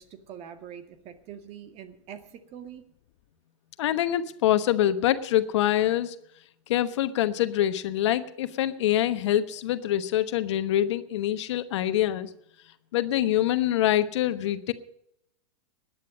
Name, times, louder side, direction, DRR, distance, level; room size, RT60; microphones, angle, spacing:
voice 1, 0.0-2.8, right 9 dB, 40° right, 8 dB, 1.9 m, -44 dB
voice 2, 3.8-6.2 6.7-12.3 12.9-14.7, left 12 dB, 65° left, 11 dB, 1.1 m, -25 dB
18.0 x 10.5 x 5.3 m, 0.76 s
hypercardioid pair, 105°, 16 cm